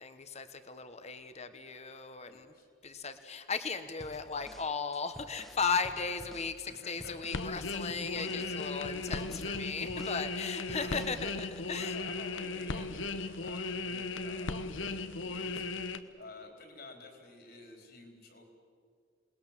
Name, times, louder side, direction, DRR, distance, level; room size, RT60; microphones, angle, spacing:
voice 1, 0.0-2.5 2.8-12.0, left 5 dB, 35° left, 10 dB, 1.3 m, -36 dB
voice 2, 2.2-2.7 6.6-7.2 8.2-8.6 10.7-11.0 11.8-18.4, left 3 dB, 55° left, 3 dB, 4.2 m, -51 dB
sound 1, 4.0-6.6 7.0-7.5 7.8-10.3 10.7-11.2, equal, ahead, 1.1 m, -52 dB
sound 2, 7.3-16.0, left 3 dB, 85° left, 1.1 m, -37 dB
28.0 x 20.0 x 7.5 m, 2.1 s
head